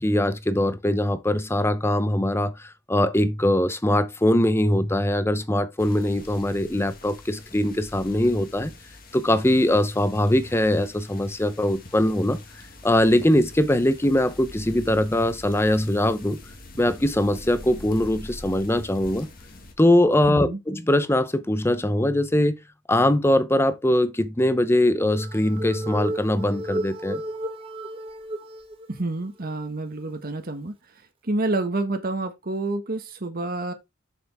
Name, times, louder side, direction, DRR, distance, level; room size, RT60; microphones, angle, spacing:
voice 1, 0.0-8.7 9.1-12.4 12.8-16.4 16.8-19.3 19.8-22.5 22.9-27.2, left 1 dB, 15° left, 0.7 m, -22 dB
sound 1, 5.8-19.7, left 2 dB, 50° left, 1.8 m, -44 dB
voice 2, 20.3-20.6 28.9-30.7 31.2-33.7, right 2 dB, 50° right, 1.2 m, -28 dB
sound 2, 25.1-28.9 29.4-29.5 30.0-30.1, right 1 dB, 30° right, 1.4 m, -33 dB
6.9 x 6.9 x 3.5 m
head